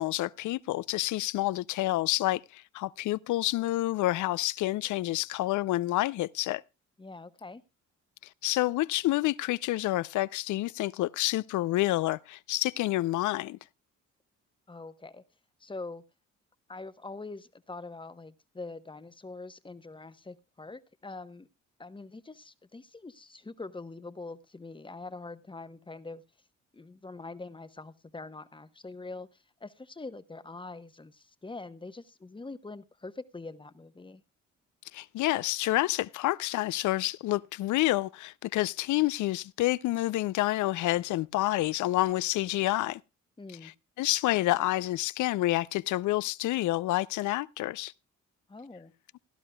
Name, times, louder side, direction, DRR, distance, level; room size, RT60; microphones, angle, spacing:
voice 1, 0.0-6.6 8.4-13.6 34.9-43.0 43.6-47.9, left 17 dB, 80° left, 0.5 m, -28 dB
voice 2, 7.0-7.6 14.7-15.2 15.6-16.0 16.7-21.5 21.8-26.2 26.7-34.2 43.4-43.7 48.5-48.9, left 3 dB, 15° left, 1.0 m, -44 dB
17.5 x 12.0 x 2.3 m
cardioid pair, 90°, 30 cm